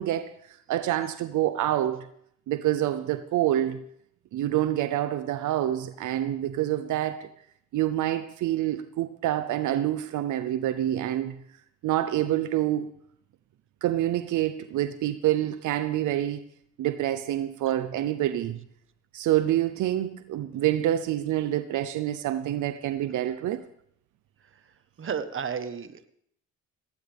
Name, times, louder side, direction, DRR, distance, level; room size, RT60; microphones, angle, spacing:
voice 1, 0.0-2.1 2.5-3.8 4.3-7.3 7.7-11.4 11.8-12.9 13.8-16.4 16.8-18.6 19.1-23.6, right 13 dB, 80° right, 0.7 m, -27 dB
voice 2, 24.4-26.1, right 7 dB, 45° right, 1.4 m, -34 dB
18.5 x 17.5 x 3.5 m
cardioid pair, 90°, 30 cm